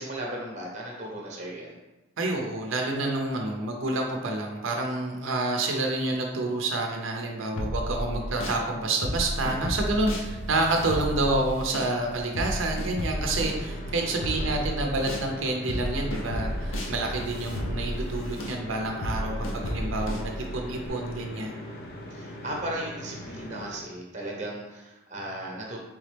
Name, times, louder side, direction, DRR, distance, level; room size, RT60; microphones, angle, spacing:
voice 1, 0.0-1.8 3.4-3.6 13.9-14.6 19.1-19.5 22.1-25.8, right 1 dB, 35° right, -1 dB, 0.8 m, -37 dB
voice 2, 2.2-21.6, right 2 dB, 75° right, 1 dB, 0.6 m, -28 dB
sound 1, 7.6-8.6 9.0-15.3 15.7-20.9, equal, 80° left, 0.7 m, -33 dB
sound 2, 13.1-23.8, equal, 50° left, 0.6 m, -41 dB
4.0 x 3.5 x 3.3 m, 1.1 s
head